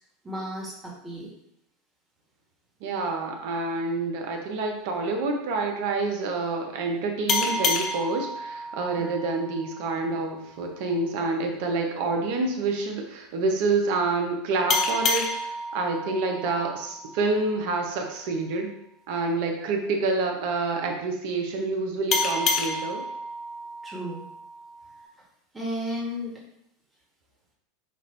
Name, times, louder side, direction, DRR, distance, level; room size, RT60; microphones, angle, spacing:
voice 1, 0.2-1.3 19.6-19.7 23.8-24.2 25.5-26.4, equal, 15° right, -2 dB, 1.5 m, -33 dB
voice 2, 2.8-18.7 19.1-23.0, right 3 dB, 65° right, 3 dB, 0.8 m, -28 dB
sound 1, 7.3-10.5 14.7-17.9 22.1-25.1, left 3 dB, 45° left, 0.7 m, -30 dB
5.5 x 2.5 x 3.3 m, 0.78 s
hypercardioid pair, 95°, 0 cm